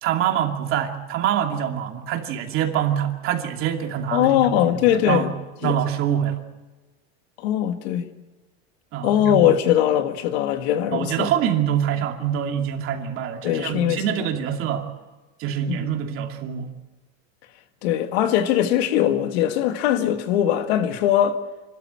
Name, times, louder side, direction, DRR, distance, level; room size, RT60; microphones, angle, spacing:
voice 1, 0.0-5.3 5.6-6.4 8.9-9.4 10.9-14.9 15.4-16.7, right 10 dB, 40° right, 2.6 m, -25 dB
voice 2, 4.1-5.3 5.6-5.8 7.4-8.1 9.0-11.3 13.4-14.3 15.7-15.9 17.8-21.4, left 11 dB, 75° left, 1.9 m, -21 dB
27.5 x 13.5 x 8.8 m
supercardioid pair, 150°, 32 cm